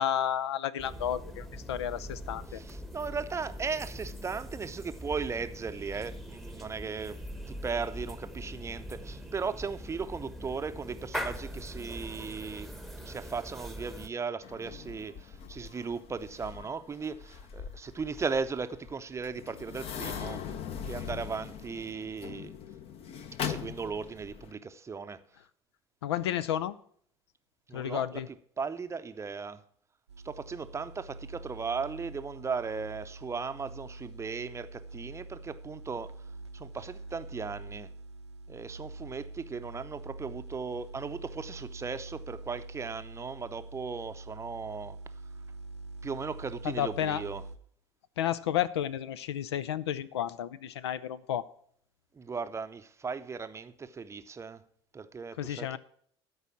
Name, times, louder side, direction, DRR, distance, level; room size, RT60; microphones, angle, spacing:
voice 1, 0.0-2.6 26.0-26.7 27.7-28.3 46.6-47.2 48.2-51.5 55.4-55.8, left 10 dB, 70° left, 0.5 m, -31 dB
sound 1, 0.8-14.1, equal, ahead, 1.1 m, -42 dB
voice 2, 2.5-7.2 7.5-12.7 13.0-20.6 20.9-22.5 23.4-25.2 27.7-28.2 28.6-29.6 30.2-36.1 36.5-37.9 38.5-45.0 46.0-47.4 52.1-54.6 54.9-55.8, right 5 dB, 20° right, 0.7 m, -37 dB
sound 2, 14.4-24.5, left 8 dB, 45° left, 1.0 m, -41 dB
sound 3, 30.1-47.6, right 2 dB, 85° right, 0.8 m, -45 dB
13.0 x 4.8 x 7.2 m
figure-of-eight pair, 70°, 14 cm